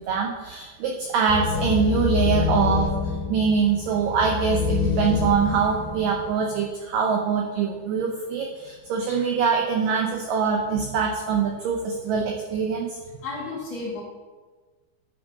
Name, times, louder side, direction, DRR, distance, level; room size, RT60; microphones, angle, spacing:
voice 1, 0.0-13.0, right 6 dB, 85° right, 1 dB, 1.9 m, -24 dB
sound 1, 1.3-6.4, left 5 dB, 85° left, 3.3 m, -26 dB
voice 2, 13.2-14.0, left 3 dB, 55° left, -5 dB, 1.9 m, -32 dB
10.5 x 5.9 x 5.4 m, 1.4 s
omnidirectional pair, 4.8 m